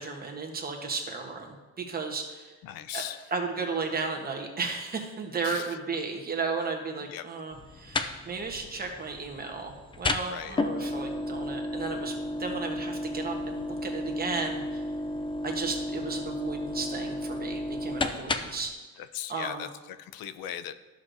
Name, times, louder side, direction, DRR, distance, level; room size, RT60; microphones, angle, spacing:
voice 1, 0.0-2.5 2.9-3.0 3.3-14.8 15.4-18.7 19.3-19.7, right 4 dB, 25° right, 2 dB, 1.1 m, -34 dB
voice 2, 2.6-3.2 5.4-5.8 7.1-7.3 10.3-10.6 19.0-20.7, left 11 dB, 85° left, 13 dB, 0.6 m, -38 dB
sound 1, 7.5-18.7, left 2 dB, 15° left, 0.3 m, -33 dB
13.0 x 6.3 x 2.6 m, 1.2 s
cardioid pair, 145°, 34 cm